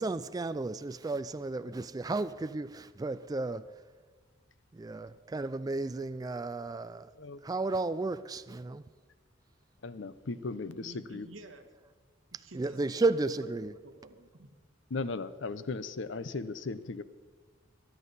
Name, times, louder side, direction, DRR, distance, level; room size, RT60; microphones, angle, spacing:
voice 1, 0.0-3.7 4.7-7.1 7.4-8.8 12.5-13.8, right 3 dB, 20° right, 0.3 m, -33 dB
voice 2, 9.8-11.3 14.9-17.0, left 3 dB, 65° left, 0.7 m, -37 dB
voice 3, 10.8-11.7 12.4-13.5 13.8-14.5, right 2 dB, 85° right, 1.5 m, -51 dB
22.0 x 11.0 x 4.1 m
head